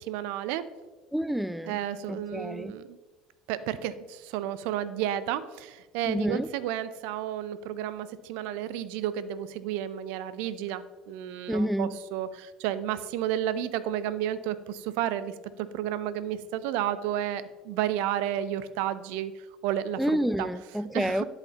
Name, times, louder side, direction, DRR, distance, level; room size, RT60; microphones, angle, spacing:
voice 1, 0.1-0.6 1.7-2.8 3.5-19.3 19.6-20.0 20.4-20.5 20.9-21.3, right 11 dB, 65° right, 0.4 m, -32 dB
voice 2, 1.1-1.8 2.1-2.7 6.1-6.5 11.5-12.0 20.0-21.2, equal, ahead, 0.3 m, -29 dB
11.0 x 4.1 x 2.9 m
hypercardioid pair, 65°, 3 cm